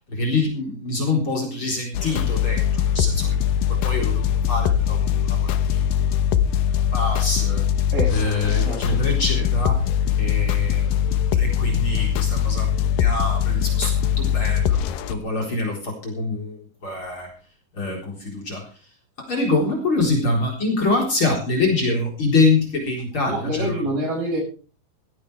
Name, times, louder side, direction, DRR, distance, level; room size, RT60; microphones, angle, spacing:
voice 1, 0.1-3.3 3.8-5.0 5.3-5.8 6.9-7.6 8.1-9.8 10.2-10.8 11.3-12.7 13.0-14.8 15.1-17.3 17.8-18.6 19.2-23.7, left 3 dB, 35° left, 0 dB, 4.7 m, -24 dB
sound 1, 1.9-15.1, left 9 dB, 75° left, 2.7 m, -21 dB
voice 2, 8.6-9.0 23.2-24.4, right 1 dB, 65° right, 1 dB, 8.7 m, -26 dB
17.0 x 17.0 x 3.4 m, 0.36 s
omnidirectional pair, 4.3 m